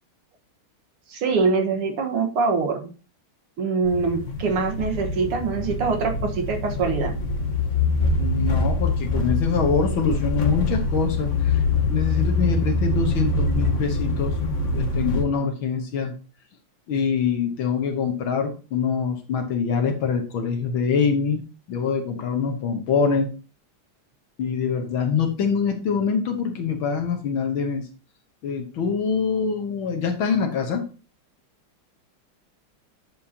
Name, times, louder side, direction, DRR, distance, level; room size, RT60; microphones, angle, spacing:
voice 1, 1.1-2.9 3.6-7.2, right 4 dB, 90° right, 3 dB, 2.4 m, -24 dB
sound 1, 3.8-15.2, left 3 dB, 40° left, 1.4 m, -24 dB
voice 2, 8.2-11.6 11.9-14.3 14.7-16.1 16.9-23.3 24.4-27.8 28.4-30.9, left 6 dB, 70° left, 4 dB, 1.9 m, -24 dB
10.0 x 7.2 x 2.9 m, 0.36 s
omnidirectional pair, 2.4 m